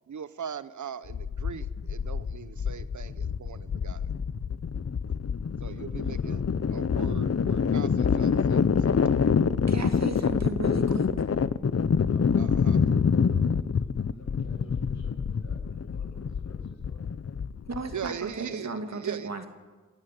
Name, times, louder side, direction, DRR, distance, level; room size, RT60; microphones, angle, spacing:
voice 1, 0.1-4.0 5.6-6.4 6.7-9.0 12.3-12.8 17.9-19.3, right 8 dB, 80° right, 16 dB, 0.8 m, -40 dB
sound 1, 1.1-18.1, left 6 dB, 55° left, 0.8 m, -26 dB
voice 2, 5.6-6.4 12.1-17.1, left 2 dB, 75° left, 2 dB, 6.1 m, -53 dB
voice 3, 9.7-11.1 17.7-19.5, right 3 dB, 60° right, 6 dB, 2.4 m, -35 dB
27.5 x 13.0 x 9.3 m, 1.4 s
wide cardioid pair, 70°, 29 cm